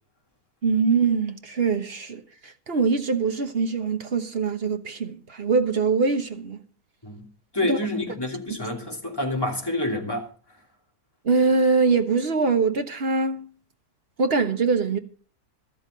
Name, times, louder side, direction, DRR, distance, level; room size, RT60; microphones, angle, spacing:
voice 1, 0.6-6.6 7.6-7.8 11.2-13.5 14.2-15.0, right 4 dB, 40° right, 1.3 m, -23 dB
voice 2, 7.5-10.3, left 1 dB, 15° left, 2.8 m, -28 dB
13.0 x 13.0 x 3.9 m
omnidirectional pair, 1.6 m